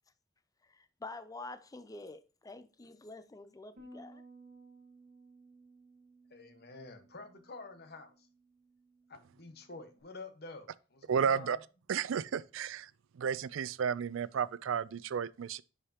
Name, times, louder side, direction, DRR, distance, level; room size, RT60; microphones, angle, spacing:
voice 1, 0.7-4.2, left 2 dB, 20° left, 0.5 m, -47 dB
Bass guitar, 3.8-10.0, right 2 dB, 40° right, 1.5 m, -58 dB
voice 2, 6.3-8.3 9.3-11.6, left 3 dB, 55° left, 1.2 m, -49 dB
voice 3, 11.1-11.6 11.9-12.9 13.2-15.6, right 7 dB, 80° right, 0.4 m, -32 dB
10.5 x 5.0 x 2.8 m
head